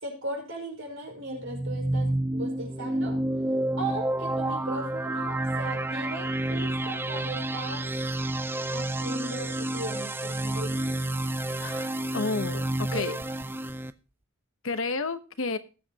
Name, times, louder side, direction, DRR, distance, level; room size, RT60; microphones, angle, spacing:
voice 1, 0.0-3.2 3.8-7.9 8.7-11.0 12.9-13.2, right 2 dB, 60° right, 1 dB, 5.2 m, -38 dB
sound 1, 1.4-13.9, right 1 dB, 10° right, 0.4 m, -30 dB
voice 2, 11.6-13.1 14.6-15.6, left 3 dB, 65° left, 11 dB, 1.0 m, -31 dB
19.5 x 7.6 x 2.9 m, 0.33 s
head